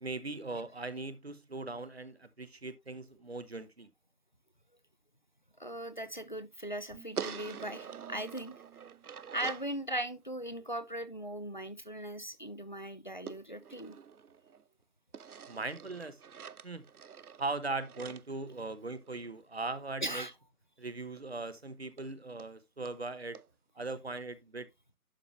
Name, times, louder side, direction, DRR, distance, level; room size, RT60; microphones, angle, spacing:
voice 1, 0.0-3.9 15.5-16.2 16.6-16.8 17.4-20.3 20.8-23.4 23.8-24.7, right 3 dB, 45° right, 0.9 m, -39 dB
voice 2, 5.6-8.6 9.3-14.0 20.0-20.3, right 1 dB, 30° left, 0.6 m, -39 dB
sound 1, 6.9-10.2, right 10 dB, 10° left, 1.2 m, -57 dB
sound 2, 7.2-9.7 13.3-14.7 15.1-19.3 21.2-21.3 21.5-21.6 22.0-22.1 22.4-22.5 22.9-23.0 23.3-23.5, right 7 dB, 75° right, 0.6 m, -45 dB
11.5 x 4.9 x 3.1 m
figure-of-eight pair, 165°, 45 cm